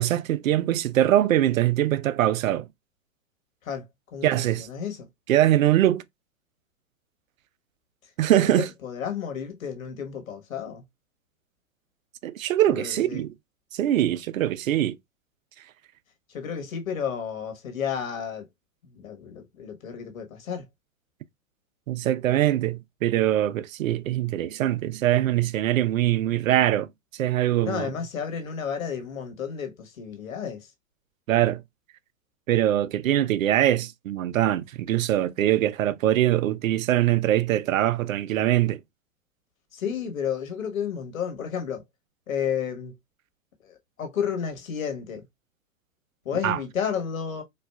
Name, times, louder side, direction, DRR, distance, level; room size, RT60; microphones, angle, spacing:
voice 1, 0.0-2.7 4.2-4.7 5.3-6.0 8.2-8.7 12.2-13.3 13.7-15.0 21.9-26.9 27.1-27.9 31.3-31.6 32.5-38.8 46.4-46.6, right 13 dB, 75° right, 0.5 m, -23 dB
voice 2, 4.1-5.1 8.3-10.8 12.7-13.2 16.3-18.5 18.8-20.7 27.6-30.7 39.7-41.8 42.3-43.0 43.6-45.2 46.2-47.4, left 7 dB, 80° left, 1.3 m, -32 dB
4.4 x 2.4 x 2.2 m
hypercardioid pair, 110°, 40 cm